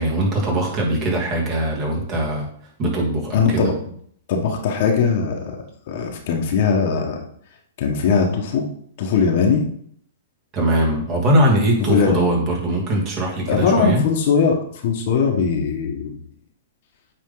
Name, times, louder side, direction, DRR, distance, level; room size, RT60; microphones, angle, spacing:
voice 1, 0.0-2.5 2.8-3.7 10.5-14.0, right 1 dB, 35° right, -2 dB, 3.0 m, -21 dB
voice 2, 3.3-3.7 4.3-5.4 5.9-7.2 7.8-8.7 9.0-9.6 11.9-12.2 13.5-14.6 14.8-16.2, left 5 dB, 55° left, 2 dB, 1.5 m, -19 dB
8.8 x 4.2 x 4.0 m, 0.63 s
hypercardioid pair, 130°, 0 cm